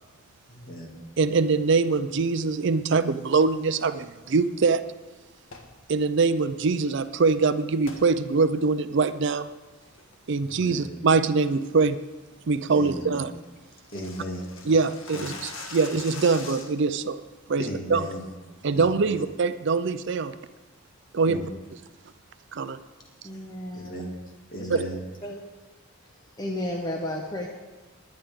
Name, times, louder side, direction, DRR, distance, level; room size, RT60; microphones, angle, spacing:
voice 1, 0.5-0.9 10.4-10.9 12.7-13.2 13.9-14.7 15.1-15.2 17.6-18.3 18.7-19.2 21.3-21.5 23.7-24.2 24.5-25.1, equal, 40° left, -1 dB, 2.3 m, -36 dB
voice 2, 1.2-4.8 5.9-9.5 10.3-12.0 12.5-13.3 14.7-17.2 17.5-18.0 18.6-20.3 21.1-21.4 22.5-22.8 24.7-24.8, right 4 dB, 55° right, 12 dB, 0.5 m, -23 dB
sound 1, 5.4-5.8 7.8-8.1 8.5-8.6 9.2-9.4 9.8-10.1 10.5-10.8 11.1-11.2 11.6-11.9 12.2-12.3 12.6-12.7 12.9-13.0 13.3-16.9, left 4 dB, 70° left, 1.5 m, -42 dB
voice 3, 23.2-24.0 24.6-24.7 25.2-25.4 26.4-27.5, left 1 dB, 20° left, 0 dB, 1.0 m, -32 dB
19.5 x 10.0 x 3.6 m, 1.2 s
head